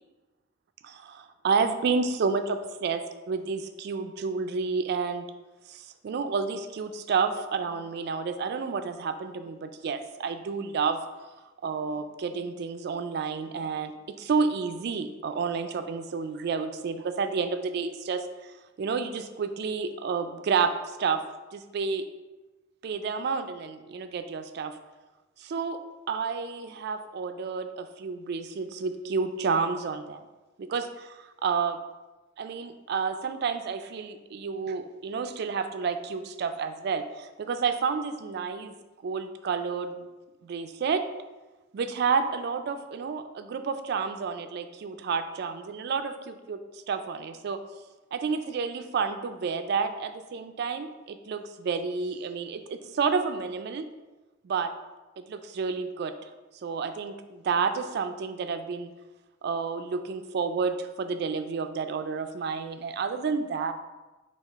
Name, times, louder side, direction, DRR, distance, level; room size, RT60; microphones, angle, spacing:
voice 1, 0.8-5.3 5.7-11.0 11.6-13.9 14.2-18.5 18.8-21.2 21.5-22.0 22.8-24.8 25.4-25.8 26.1-30.2 30.6-31.8 32.4-38.7 39.0-40.1 40.4-41.0 41.7-46.6 46.9-47.6 48.1-53.8 54.4-54.7 55.3-56.1 56.6-58.9 59.4-63.7, right 5 dB, 55° right, 9 dB, 0.3 m, -30 dB
5.5 x 2.3 x 3.4 m, 1.1 s
head